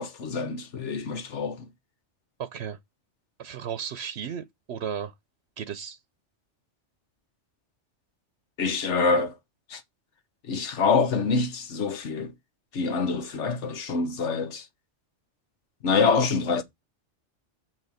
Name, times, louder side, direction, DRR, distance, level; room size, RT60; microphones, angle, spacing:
voice 1, 0.0-1.7 8.6-9.4 9.7-9.8 10.4-12.3 12.7-14.7 15.8-16.6, left 4 dB, 85° left, 1.4 m, -26 dB
voice 2, 2.4-2.8 3.4-5.1 5.6-6.0, right 8 dB, 70° right, 0.9 m, -34 dB
6.5 x 6.4 x 4.9 m
omnidirectional pair, 1.2 m